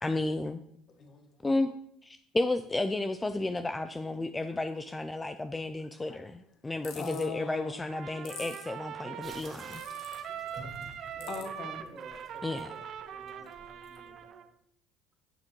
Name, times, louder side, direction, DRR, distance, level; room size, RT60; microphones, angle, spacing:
voice 1, 0.0-0.6 1.4-1.7 2.0-9.8 12.4-12.7, left 2 dB, 15° left, 9 dB, 0.4 m, -32 dB
voice 2, 1.0-1.3 4.2-4.5 6.1-6.2 6.9-7.9 9.8-10.7 11.3-11.8 13.4-13.5 14.0-14.1, left 4 dB, 45° left, 5 dB, 1.5 m, -42 dB
sound 1, 6.8-7.2 8.2-8.6 9.7-10.1 11.2-11.4, left 7 dB, 75° left, 1.5 m, -44 dB
Trumpet, 7.9-14.5, right 9 dB, 55° right, 0.7 m, -42 dB
sound 2, 9.2-14.3, right 2 dB, 35° right, 1.8 m, -52 dB
voice 3, 11.1-14.5, right 1 dB, 15° right, 2 dB, 1.9 m, -53 dB
11.0 x 6.6 x 3.1 m, 0.73 s
supercardioid pair, 95°, 0 cm